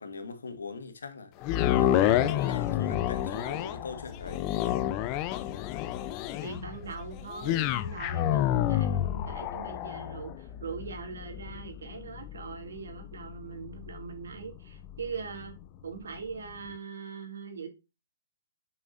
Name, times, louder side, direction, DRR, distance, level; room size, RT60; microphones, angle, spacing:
voice 1, 0.0-4.5, left 4 dB, 85° left, 1.7 m, -41 dB
sound 1, 1.4-15.6 16.1-16.2, left 12 dB, 30° left, 0.6 m, -30 dB
voice 2, 6.4-15.5 15.8-17.7, right 5 dB, 80° right, 2.6 m, -41 dB
7.5 x 5.9 x 2.6 m
hypercardioid pair, 145°, 0 cm